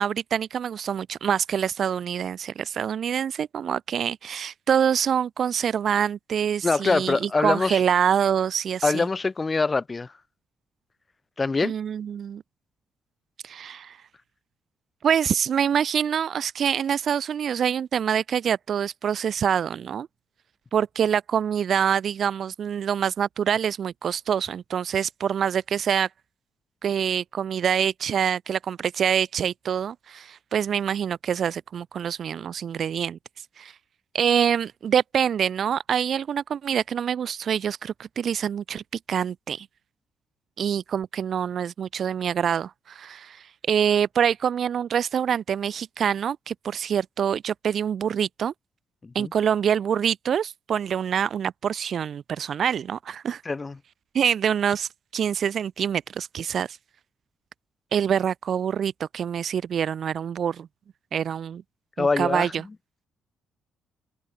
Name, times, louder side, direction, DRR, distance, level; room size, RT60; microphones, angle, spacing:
voice 1, 0.0-9.1 11.6-12.4 13.4-14.0 15.0-20.1 20.7-26.1 26.8-33.2 33.6-33.7 34.1-38.8 39.1-39.7 40.6-48.5 49.1-53.4 54.1-56.8 57.9-60.7 61.1-61.6 62.0-62.6, right 8 dB, 55° right, 0.5 m, -25 dB
voice 2, 6.6-7.8 8.8-10.1 11.4-11.7 49.0-49.3 53.5-53.8 62.0-62.5, left 3 dB, 25° left, 1.8 m, -24 dB
cardioid pair, 90°, 0 cm